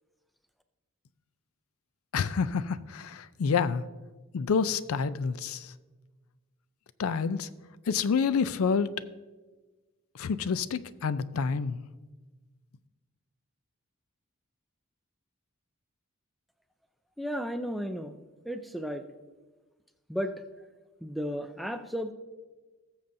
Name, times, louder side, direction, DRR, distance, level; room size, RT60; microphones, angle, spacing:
voice 1, 2.1-3.8 4.3-5.7 7.0-7.5 7.9-8.9 10.2-11.8, left 5 dB, 75° left, 15 dB, 0.4 m, -28 dB
voice 2, 17.2-18.2 18.5-19.0 20.1-20.4 21.0-22.1, equal, ahead, 8 dB, 0.4 m, -33 dB
19.0 x 6.9 x 2.6 m, 1.3 s
head